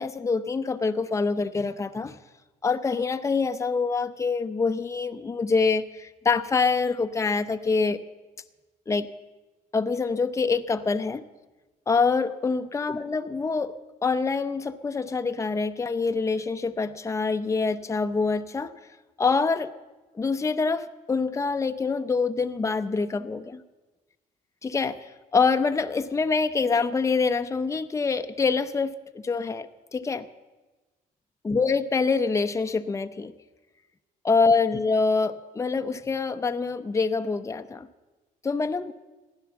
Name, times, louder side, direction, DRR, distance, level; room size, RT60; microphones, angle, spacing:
voice 1, 0.0-2.1 2.6-8.0 8.9-9.1 9.7-11.2 11.9-13.7 14.0-18.7 19.2-19.7 20.1-23.6 24.6-30.3 31.4-33.3 34.2-37.9 38.4-38.9, left 4 dB, 20° left, 9 dB, 0.7 m, -25 dB
15.5 x 10.5 x 7.0 m, 1.2 s
cardioid pair, 95°, 15 cm